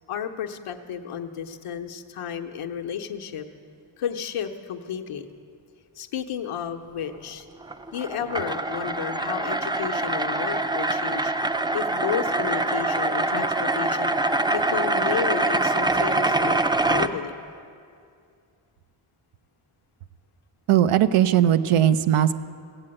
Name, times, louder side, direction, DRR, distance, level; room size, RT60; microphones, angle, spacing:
voice 1, 0.1-3.5 4.0-5.3 6.0-7.5 7.9-11.3 11.7-14.1 14.5-17.3, left 8 dB, 85° left, 4 dB, 0.9 m, -32 dB
sound 1, 7.6-17.1, right 2 dB, 10° right, 0.4 m, -24 dB
voice 2, 20.7-22.3, right 11 dB, 90° right, 13 dB, 0.6 m, -19 dB
16.0 x 7.7 x 8.7 m, 2.4 s
cardioid pair, 90°, 50 cm